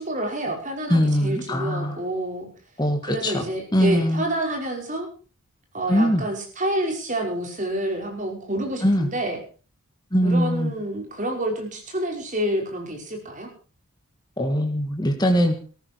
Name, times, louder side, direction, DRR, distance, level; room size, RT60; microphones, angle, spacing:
voice 1, 0.0-2.5 3.1-5.1 5.7-9.4 10.2-13.5, right 1 dB, 35° right, 1 dB, 5.3 m, -28 dB
voice 2, 0.9-2.0 2.8-3.5 3.7-4.2 5.9-6.3 8.8-9.1 10.1-10.7 14.4-15.5, equal, 20° left, 3 dB, 1.9 m, -21 dB
18.5 x 14.0 x 4.7 m, 0.38 s
head